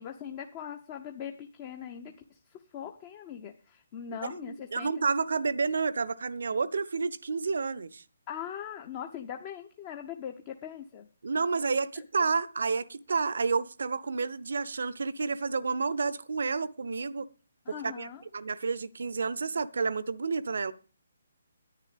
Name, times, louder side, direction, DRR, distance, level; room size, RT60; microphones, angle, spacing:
voice 1, 0.0-4.9 8.3-11.1 12.0-12.1 17.7-18.2, left 9 dB, 30° left, 0.9 m, -41 dB
voice 2, 4.2-8.0 11.2-17.3 17.8-20.7, right 4 dB, 60° right, 0.7 m, -30 dB
10.5 x 9.8 x 5.1 m
figure-of-eight pair, 135°, 0 cm